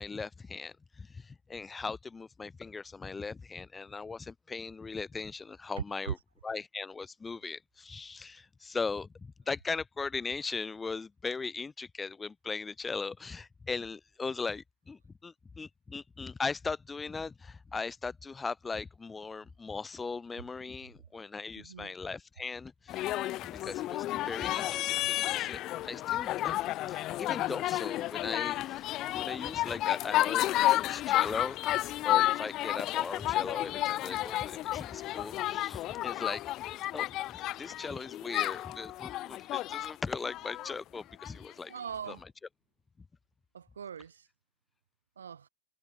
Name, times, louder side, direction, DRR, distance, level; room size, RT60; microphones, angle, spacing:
voice 1, 0.0-6.2 6.4-9.1 9.5-23.1 23.4-26.6 26.9-28.9 29.1-36.4 36.9-37.1 37.6-41.7 42.1-42.2, left 4 dB, 15° left, 1.3 m, -39 dB
voice 2, 21.6-21.9 41.7-42.3 43.5-44.3 45.2-45.5, right 7 dB, 70° right, 7.2 m, -40 dB
sound 1, 22.9-41.3 42.1-42.2, left 15 dB, 35° left, 0.9 m, -31 dB
figure-of-eight pair, 90°, 0 cm